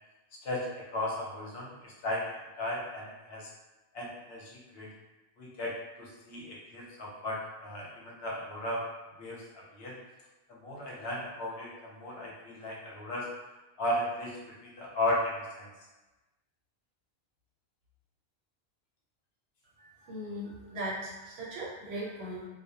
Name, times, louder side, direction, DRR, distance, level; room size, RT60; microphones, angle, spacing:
voice 1, 0.4-3.5 3.9-4.9 5.4-8.8 9.2-9.9 10.5-13.3 13.8-15.7, left 1 dB, 75° left, -4 dB, 0.9 m, -35 dB
voice 2, 19.8-22.5, right 1 dB, 90° right, -5 dB, 1.0 m, -39 dB
2.2 x 2.1 x 2.7 m, 1.1 s
omnidirectional pair, 1.0 m